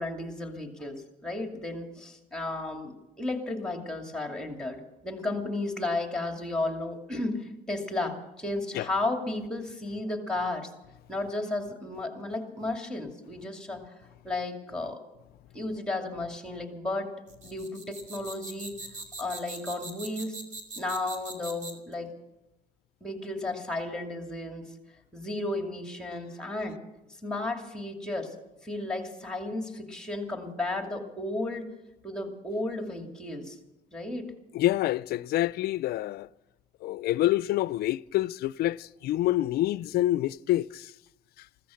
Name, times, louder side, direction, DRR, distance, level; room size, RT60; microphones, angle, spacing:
voice 1, 0.0-10.7 11.1-14.0 14.2-15.0 15.5-17.1 17.4-18.7 19.2-20.4 20.8-22.1 23.0-24.7 25.1-26.8 27.2-28.3 28.6-31.7 32.0-33.6 33.9-34.3, left 2 dB, 5° left, 2.6 m, -33 dB
sound 1, 17.3-21.9, right 2 dB, 45° right, 2.7 m, -41 dB
voice 2, 34.5-36.3 36.8-40.9, left 15 dB, 70° left, 0.4 m, -27 dB
15.0 x 14.0 x 6.4 m
cardioid pair, 110°, 17 cm